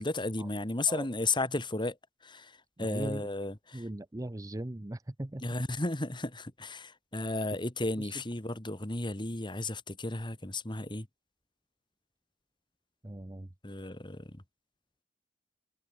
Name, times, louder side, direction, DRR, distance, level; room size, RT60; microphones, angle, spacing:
voice 1, 0.0-2.0 2.2-3.8 5.4-11.1 13.6-14.4, left 2 dB, 25° left, 2.5 m, -34 dB
voice 2, 2.8-3.3 3.7-5.4 8.0-8.1 13.0-13.5, right 1 dB, 20° right, 0.7 m, -39 dB
head